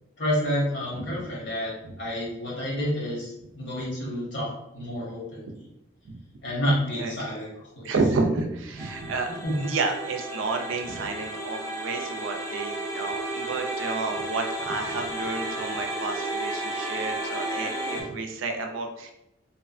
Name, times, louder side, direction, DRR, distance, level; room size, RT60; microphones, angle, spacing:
voice 1, 0.2-5.5 6.4-7.5 7.8-7.9 9.4-9.5, equal, 65° left, -5 dB, 1.0 m, -29 dB
voice 2, 7.8-19.1, right 3 dB, 80° right, 4 dB, 0.4 m, -30 dB
sound 1, 8.8-18.0, right 1 dB, 15° left, 0.4 m, -33 dB
2.9 x 2.1 x 2.4 m, 0.87 s
head